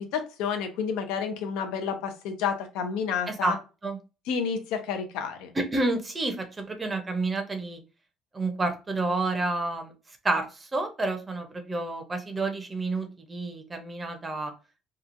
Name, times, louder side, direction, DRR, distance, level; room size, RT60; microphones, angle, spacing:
voice 1, 0.0-3.6 4.3-5.5, left 6 dB, 90° left, 7 dB, 0.6 m, -30 dB
voice 2, 5.5-7.8 8.3-9.9 10.2-14.5, right 2 dB, 15° right, 5 dB, 0.5 m, -29 dB
2.9 x 2.3 x 2.5 m, 0.31 s
cardioid pair, 145°, 0 cm